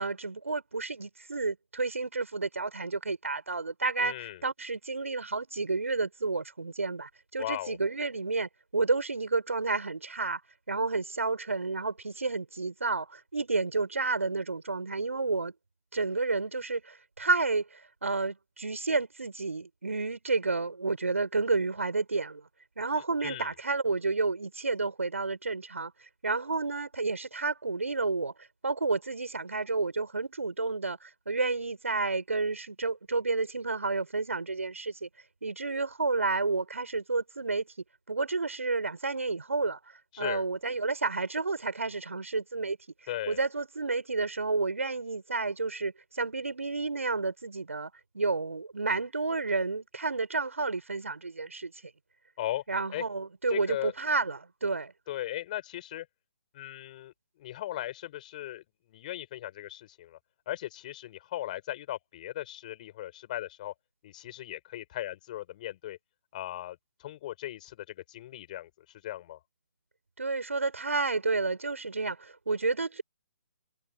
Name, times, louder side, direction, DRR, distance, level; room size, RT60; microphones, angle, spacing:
voice 1, 0.0-10.4 10.7-15.5 15.9-22.5 22.8-25.9 26.2-28.3 28.6-35.1 35.4-37.7 38.1-39.8 40.2-42.8 43.3-51.7 52.7-54.9 70.2-73.0, right 3 dB, 70° right, 6.6 m, -30 dB
voice 2, 4.0-4.4 7.4-7.8 23.2-23.5 40.1-40.4 43.1-43.4 52.4-52.6 52.9-53.0 53.5-53.9 55.1-56.1 56.5-58.6 58.9-60.2 60.5-63.7 64.0-66.0 66.3-69.4, left 14 dB, 35° left, 7.4 m, -38 dB
figure-of-eight pair, 135°, 8 cm